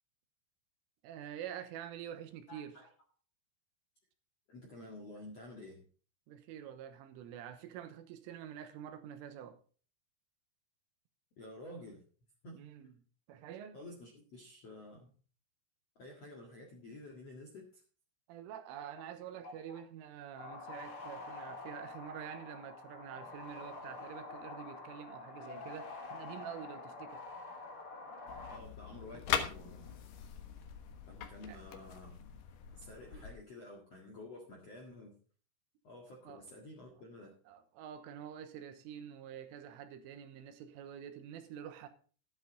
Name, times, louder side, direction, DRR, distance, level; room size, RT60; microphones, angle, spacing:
voice 1, 1.0-2.8 6.3-9.6 12.5-12.9 13.3-13.8 18.3-27.2 31.5-31.6 33.1-33.2 36.3-36.4 37.5-41.9, right 9 dB, 80° right, 3.5 m, -47 dB
voice 2, 2.5-2.9 4.5-5.8 11.4-12.0 12.4-12.6 13.7-15.1 15.9-17.8 19.4-19.8 28.5-30.0 31.0-32.4 32.7-35.2 35.8-37.3, left 1 dB, 60° left, 1.7 m, -51 dB
sound 1, 20.4-28.6, left 3 dB, 30° left, 3.3 m, -47 dB
sound 2, 28.3-33.3, left 8 dB, 90° left, 1.9 m, -41 dB
12.0 x 10.5 x 4.0 m
omnidirectional pair, 6.0 m